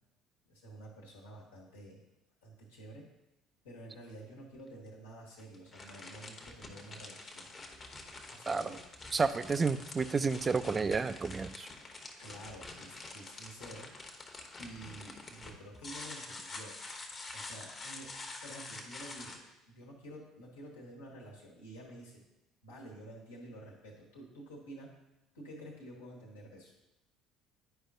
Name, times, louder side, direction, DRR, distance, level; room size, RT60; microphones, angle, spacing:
voice 1, 0.5-2.0 2.4-3.1 3.6-7.5 8.3-8.8 9.5-9.6 12.2-13.9 14.6-16.8 17.3-18.1 18.4-22.2 22.6-24.9 25.3-26.7, right 1 dB, 75° left, -3 dB, 1.3 m, -50 dB
sound 1, 4.5-4.6 5.4-19.4, left 2 dB, 30° left, 1.0 m, -47 dB
voice 2, 9.1-11.7, right 4 dB, 25° right, 12 dB, 0.3 m, -31 dB
10.0 x 5.0 x 2.6 m, 0.97 s
figure-of-eight pair, 55°, 0 cm